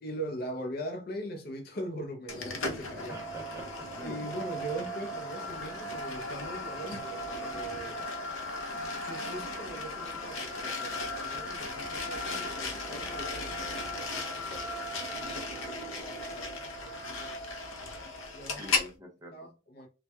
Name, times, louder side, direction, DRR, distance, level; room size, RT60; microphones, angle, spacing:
voice 1, 0.0-3.3 4.0-8.1 9.0-17.4 18.3-18.8 19.3-19.9, right 1 dB, 45° left, 0.5 m, -41 dB
sound 1, 2.3-18.9, left 2 dB, 75° left, 0.7 m, -36 dB
voice 2, 3.1-4.3 18.6-19.5, equal, 15° right, 0.6 m, -46 dB
4.1 x 2.2 x 2.2 m
head